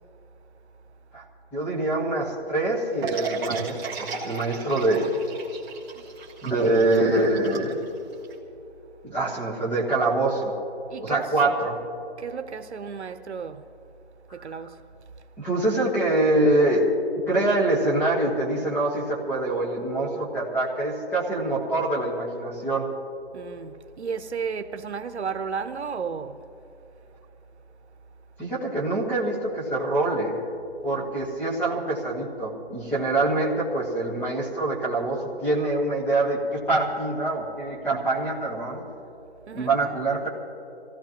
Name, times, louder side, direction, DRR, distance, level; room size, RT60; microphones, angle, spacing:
voice 1, 1.5-5.2 6.4-7.8 9.0-10.5 11.0-11.8 15.4-16.9 17.3-22.9 28.4-30.4 30.8-38.8 39.5-40.3, right 2 dB, 5° left, 1.4 m, -25 dB
sound 1, 3.0-8.3, right 5 dB, 15° right, 1.5 m, -35 dB
voice 2, 10.9-11.6 12.2-13.6 14.3-14.8 23.3-26.5 33.0-33.2 39.4-39.7, right 6 dB, 80° right, 1.0 m, -34 dB
25.5 x 16.5 x 3.0 m
hypercardioid pair, 165°, 33 cm